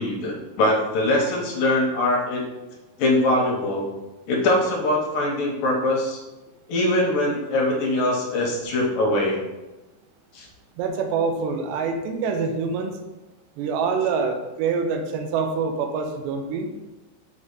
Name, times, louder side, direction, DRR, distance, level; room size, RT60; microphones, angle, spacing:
voice 1, 0.0-2.5 3.0-3.8 4.3-6.2 6.7-9.4 10.3-10.5, left 1 dB, 70° left, -1 dB, 2.3 m, -22 dB
voice 2, 10.8-12.9 13.6-16.7, right 5 dB, 85° right, 5 dB, 2.9 m, -25 dB
6.5 x 5.4 x 5.4 m, 1.1 s
omnidirectional pair, 5.0 m